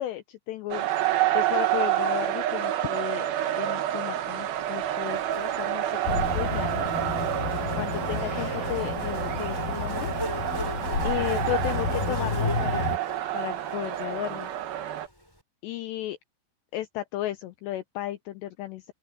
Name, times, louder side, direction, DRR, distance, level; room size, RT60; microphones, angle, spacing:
voice 1, 0.0-3.3 3.6-6.9 7.7-10.1 11.0-13.0 13.3-14.5 15.6-16.2 16.7-18.9, left 14 dB, 80° left, 2.7 m, -34 dB
sound 1, 0.7-15.1, right 13 dB, 65° right, 2.8 m, -29 dB
Buzz, 4.6-15.0, equal, 5° left, 6.7 m, -40 dB
sound 2, 6.0-13.0, left 4 dB, 50° left, 7.6 m, -31 dB
open air
omnidirectional pair, 5.6 m